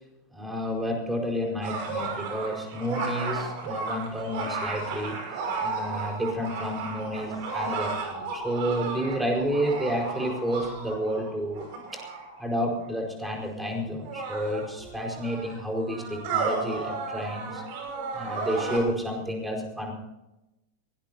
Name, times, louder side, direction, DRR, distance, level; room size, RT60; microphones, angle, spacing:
voice 1, 0.3-5.2 5.6-12.0 12.4-17.6 18.1-19.9, equal, 5° right, 1 dB, 4.8 m, -30 dB
sound 1, 1.6-12.4 13.3-13.4 14.0-18.8, right 4 dB, 50° right, 6.0 m, -34 dB
23.0 x 18.5 x 2.8 m, 0.94 s
figure-of-eight pair, 90°, 0 cm